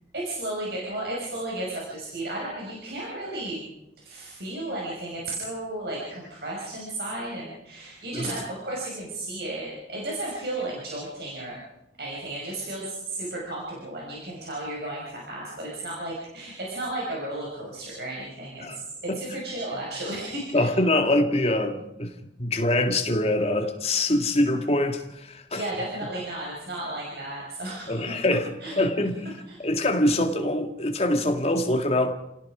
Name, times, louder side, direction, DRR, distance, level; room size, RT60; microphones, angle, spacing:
voice 1, 0.1-3.6 4.0-11.6 12.0-20.7 25.5-28.1 28.6-28.7 29.5-29.6, right 1 dB, 60° right, 5.8 m, -34 dB
voice 2, 20.5-22.1 22.4-25.7 27.9-28.5 28.7-29.2 29.6-32.1, left 1 dB, 35° left, 2.1 m, -24 dB
30.0 x 17.5 x 5.0 m
head